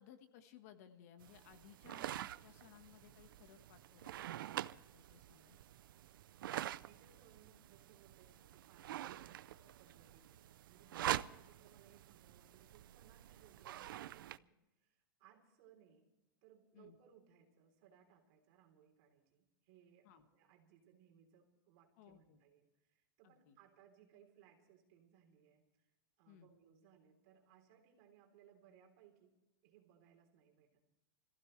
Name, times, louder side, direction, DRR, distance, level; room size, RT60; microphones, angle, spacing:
voice 1, 0.0-5.6 16.7-17.0 20.0-20.2 22.0-22.4 23.2-23.6 26.3-26.5, left 9 dB, 45° left, 8 dB, 1.4 m, -61 dB
sound 1, 1.2-14.4, right 13 dB, 75° right, 0.5 m, -46 dB
voice 2, 6.7-16.1 16.4-25.9 26.2-29.4 29.6-30.8, right 8 dB, 40° right, 2 dB, 3.6 m, -67 dB
25.5 x 15.5 x 3.3 m, 0.95 s
supercardioid pair, 170°, 11 cm